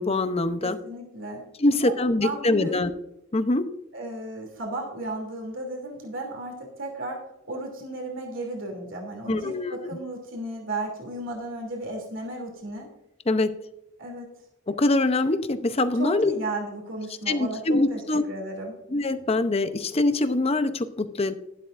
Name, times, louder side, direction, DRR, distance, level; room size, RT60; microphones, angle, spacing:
voice 1, 0.0-0.8 1.6-2.9 3.3-3.7 9.3-10.0 13.3-13.6 14.7-16.3 17.3-18.2 18.9-21.3, left 2 dB, 30° left, 10 dB, 0.7 m, -24 dB
voice 2, 0.6-2.8 3.9-7.2 7.5-12.9 14.0-14.3 16.0-18.8, right 1 dB, 75° right, 1 dB, 2.9 m, -34 dB
12.5 x 12.0 x 2.6 m, 0.81 s
head